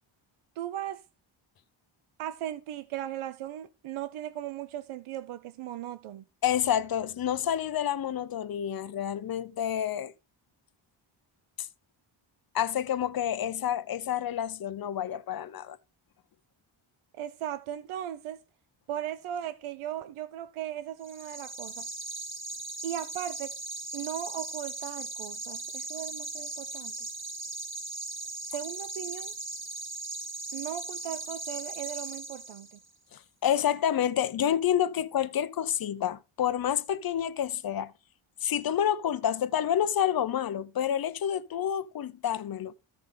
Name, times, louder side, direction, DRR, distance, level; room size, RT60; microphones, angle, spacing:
voice 1, 0.6-1.0 2.2-6.2 17.1-18.4 18.9-21.9 22.8-23.5 23.9-26.9 28.5-29.3 30.5-32.8, right 11 dB, 85° right, 0.7 m, -37 dB
voice 2, 6.4-10.1 11.6-11.7 12.5-15.8 33.1-37.9 38.4-42.7, left 10 dB, 45° left, 0.8 m, -29 dB
sound 1, 21.0-32.9, right 2 dB, 25° right, 2.6 m, -38 dB
13.5 x 5.3 x 3.8 m
cardioid pair, 115°, 48 cm